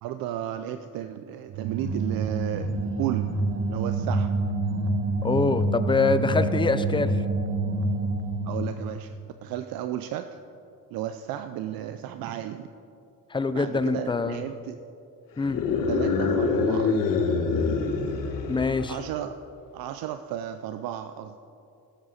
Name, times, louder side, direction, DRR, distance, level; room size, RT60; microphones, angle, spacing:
voice 1, 0.0-3.3 3.7-4.3 8.4-10.3 10.9-12.7 13.5-14.8 15.9-17.0 18.9-19.3 19.7-21.4, right 11 dB, 80° right, 9 dB, 0.5 m, -33 dB
sound 1, 1.5-8.9, right 2 dB, 35° right, 1.0 m, -27 dB
voice 2, 5.2-7.1 13.3-14.4 15.4-15.6 18.5-19.0, left 4 dB, 15° left, 12 dB, 0.4 m, -24 dB
sound 2, 15.4-19.1, left 4 dB, 70° left, 1.3 m, -25 dB
17.0 x 7.9 x 4.1 m, 2.7 s
cardioid pair, 120°, 35 cm